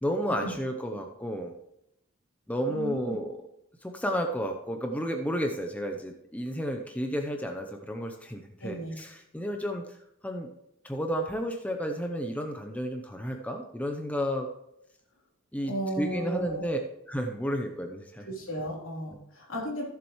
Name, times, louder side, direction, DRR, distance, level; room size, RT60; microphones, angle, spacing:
voice 1, 0.0-1.5 2.5-3.4 3.8-10.0 10.2-10.5 10.8-14.5 15.5-16.8 17.1-18.3, equal, 5° left, 3 dB, 0.7 m, -32 dB
voice 2, 2.7-3.2 8.6-9.0 15.7-16.7 18.2-19.9, right 1 dB, 70° left, -3 dB, 3.4 m, -34 dB
14.0 x 7.2 x 3.2 m, 0.82 s
head